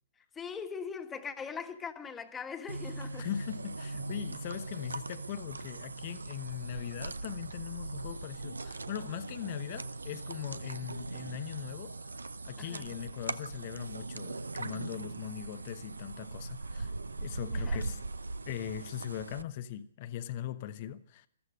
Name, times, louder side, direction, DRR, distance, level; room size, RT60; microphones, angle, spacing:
voice 1, 0.3-3.3 12.6-13.0 17.5-17.8, left 6 dB, 15° left, 1.6 m, -41 dB
sound 1, 2.7-19.4, right 3 dB, 85° right, 0.7 m, -40 dB
voice 2, 3.2-12.0 12.5-16.9 17.2-18.0 18.5-21.3, left 11 dB, 45° left, 0.9 m, -40 dB
14.5 x 14.0 x 6.4 m
figure-of-eight pair, 125°, 0 cm